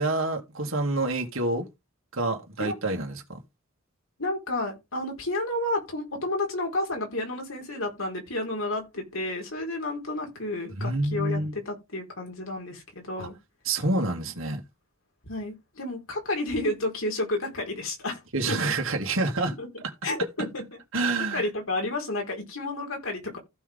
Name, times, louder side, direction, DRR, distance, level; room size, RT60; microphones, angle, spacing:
voice 1, 0.0-1.7 2.1-3.4 10.8-11.5 13.2-13.3 13.7-14.6 18.3-19.5 20.9-21.4, right 2 dB, 70° right, 2.4 m, -27 dB
voice 2, 4.2-13.3 15.2-18.2 18.5-18.7 19.6-19.7 20.0-20.8 21.3-23.4, left 2 dB, 80° left, 4.4 m, -31 dB
15.0 x 6.0 x 3.7 m
head